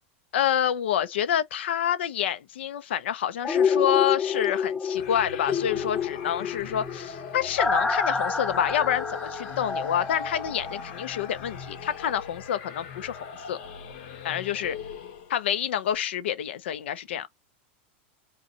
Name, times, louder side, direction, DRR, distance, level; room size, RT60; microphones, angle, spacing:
voice 1, 0.3-13.6 14.2-14.8 15.3-17.3, left 10 dB, 90° left, 0.9 m, -28 dB
sound 1, 3.4-11.3 11.7-11.8, left 5 dB, 10° left, 0.4 m, -28 dB
sound 2, 5.0-15.5, left 7 dB, 65° left, 1.3 m, -40 dB
5.1 x 2.5 x 2.9 m
supercardioid pair, 145°, 6 cm